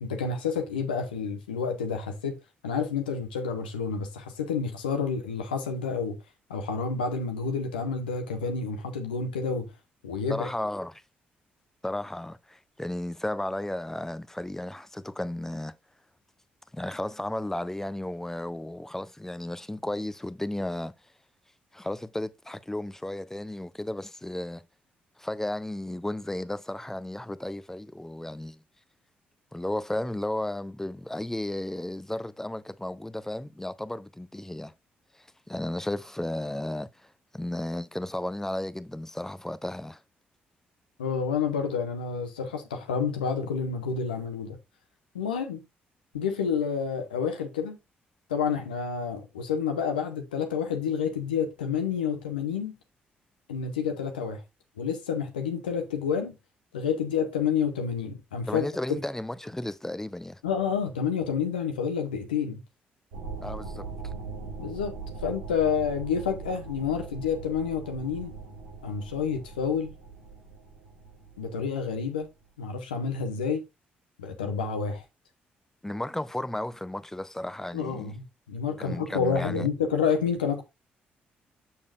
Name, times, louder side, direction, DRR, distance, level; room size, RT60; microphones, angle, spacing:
voice 1, 0.0-2.4 2.6-6.2 6.5-9.7 10.0-10.5 41.0-44.6 45.1-45.6 46.1-47.8 48.3-52.7 53.5-54.4 54.8-56.3 56.7-58.7 60.4-62.6 64.6-65.0 65.2-68.3 68.8-69.9 71.4-72.3 72.6-73.6 74.2-75.0 77.7-80.6, left 6 dB, 80° left, 1.0 m, -29 dB
voice 2, 10.3-11.0 11.8-15.8 16.7-20.9 21.7-24.6 25.2-28.6 29.5-34.7 35.1-40.0 58.5-60.4 63.4-63.9 75.8-78.1 78.8-79.7, left 1 dB, 10° left, 0.6 m, -34 dB
sound 1, 63.1-72.3, right 4 dB, 75° right, 2.4 m, -41 dB
7.2 x 6.7 x 2.5 m
figure-of-eight pair, 40°, 5 cm